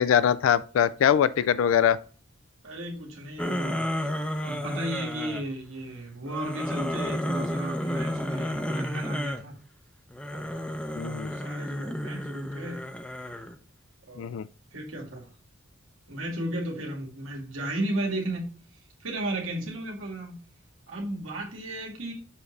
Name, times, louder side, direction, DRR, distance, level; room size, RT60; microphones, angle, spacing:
voice 1, 0.0-2.0 11.0-11.3 14.2-14.5, left 9 dB, 75° left, 0.3 m, -22 dB
voice 2, 2.6-9.6 10.3-10.8 11.3-12.9 14.1-14.4 14.7-15.3 16.1-18.5 19.0-20.4 20.9-22.1, right 1 dB, 85° right, 2.0 m, -34 dB
sound 1, 3.4-5.4 6.3-9.4 10.1-13.6, equal, 5° left, 0.5 m, -32 dB
7.1 x 3.2 x 4.9 m
head